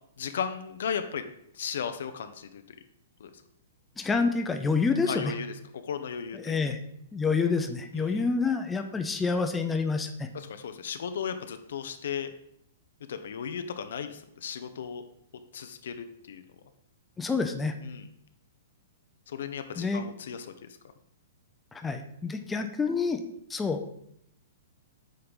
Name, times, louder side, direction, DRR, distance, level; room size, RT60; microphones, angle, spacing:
voice 1, 0.2-1.2 1.5-2.6 3.2-3.3 5.1-6.7 7.9-8.2 10.3-12.3 13.1-15.0 15.5-16.4 17.8-18.1 19.3-20.8, left 7 dB, 55° left, 9 dB, 0.5 m, -36 dB
voice 2, 4.0-5.3 6.4-6.8 7.1-10.3 17.2-17.7 19.8-20.1 21.8-23.2 23.5-23.9, left 4 dB, 10° left, 6 dB, 0.6 m, -27 dB
8.7 x 3.3 x 5.6 m, 0.73 s
figure-of-eight pair, 110°, 0 cm